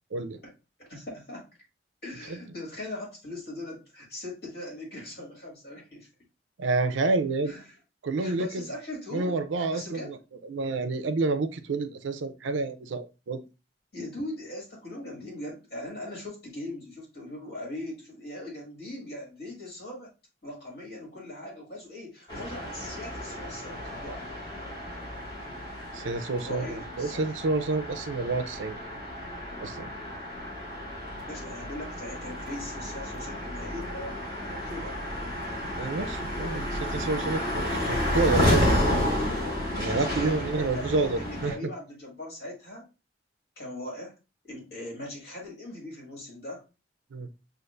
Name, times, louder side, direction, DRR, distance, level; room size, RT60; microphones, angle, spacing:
voice 1, 0.8-1.5 2.0-6.1 7.5-7.7 8.2-10.1 13.9-20.1 20.4-24.3 26.4-27.3 31.3-35.0 39.7-42.9 43.6-44.1 44.5-46.6, left 1 dB, 55° left, 2.0 m, -40 dB
voice 2, 6.6-7.5 8.0-8.6 9.1-10.2 10.4-13.4 25.9-28.8 29.6-29.9 35.7-39.0 39.8-41.5 47.1-47.3, right 3 dB, 90° right, 0.5 m, -29 dB
sound 1, 22.3-41.5, left 1 dB, 25° left, 1.5 m, -31 dB
6.4 x 2.5 x 2.4 m
head